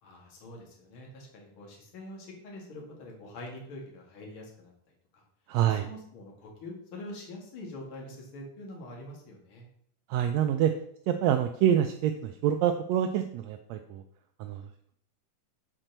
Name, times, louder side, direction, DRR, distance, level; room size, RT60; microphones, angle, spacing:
voice 1, 0.0-4.7 5.1-5.2 5.6-9.7, left 1 dB, 45° left, -1 dB, 2.7 m, -45 dB
voice 2, 5.5-5.9 10.1-10.7 11.1-14.0 14.4-14.7, right 10 dB, 80° right, 6 dB, 1.5 m, -26 dB
7.4 x 4.5 x 6.6 m, 0.65 s
omnidirectional pair, 3.5 m